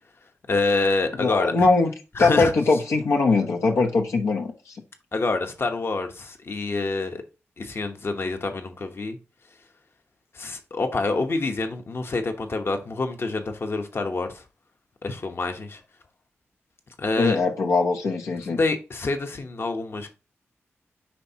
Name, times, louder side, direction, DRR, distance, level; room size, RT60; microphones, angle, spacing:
voice 1, 0.5-1.7 2.1-2.5 5.1-7.2 7.6-9.2 10.3-14.4 15.0-15.8 17.0-17.4 18.6-20.1, left 3 dB, 55° left, 1.0 m, -27 dB
voice 2, 1.2-1.9 2.2-4.5 17.2-18.6, left 3 dB, 90° left, 0.9 m, -21 dB
9.8 x 3.5 x 2.9 m
cardioid pair, 55°, 5 cm